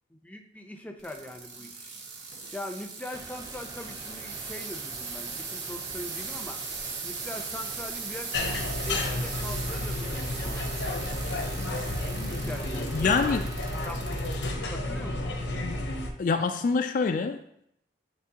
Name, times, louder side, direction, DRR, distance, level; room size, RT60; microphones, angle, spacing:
voice 1, 0.1-1.9 2.5-6.6 7.0-8.4 8.8-11.0 12.2-13.5 13.8-14.2 14.7-15.3, left 1 dB, 10° left, 0.6 m, -41 dB
sound 1, 1.0-14.5 15.0-15.4 16.1-16.2, right 5 dB, 85° right, 1.3 m, -39 dB
sound 2, 3.1-13.9, right 1 dB, 20° right, 0.7 m, -47 dB
sound 3, 8.3-16.1, left 2 dB, 90° left, 1.0 m, -31 dB
voice 2, 12.9-13.5 15.6-15.9 16.2-17.6, left 4 dB, 50° left, 0.3 m, -26 dB
9.5 x 4.5 x 2.9 m
head